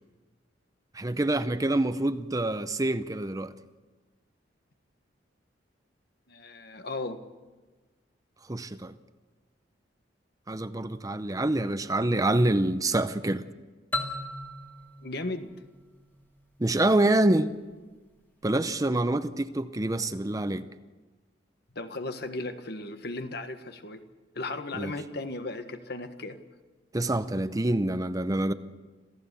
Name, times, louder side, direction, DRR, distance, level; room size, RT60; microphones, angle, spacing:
voice 1, 0.9-3.5 8.5-8.9 10.5-13.4 16.6-17.5 18.4-20.6 24.7-24.9 26.9-28.5, right 1 dB, 20° right, 0.7 m, -26 dB
voice 2, 6.3-7.2 15.0-15.5 21.7-24.0 24.3-26.4, left 2 dB, 60° left, 1.5 m, -36 dB
sound 1, 13.9-16.6, left 2 dB, 10° left, 2.1 m, -37 dB
27.0 x 16.0 x 7.0 m
head